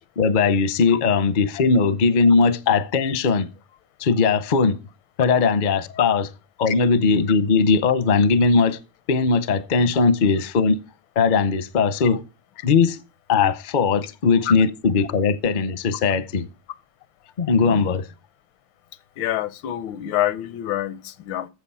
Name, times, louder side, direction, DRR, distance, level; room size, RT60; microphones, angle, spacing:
voice 1, 0.2-3.5 4.0-4.8 5.2-6.3 6.6-8.8 9.1-10.8 11.2-12.2 12.6-13.0 13.3-16.5 17.4-18.1, left 5 dB, 55° left, 0.5 m, -19 dB
voice 2, 17.6-17.9 19.2-21.5, left 13 dB, 90° left, 1.5 m, -27 dB
8.0 x 7.3 x 5.6 m
omnidirectional pair, 2.0 m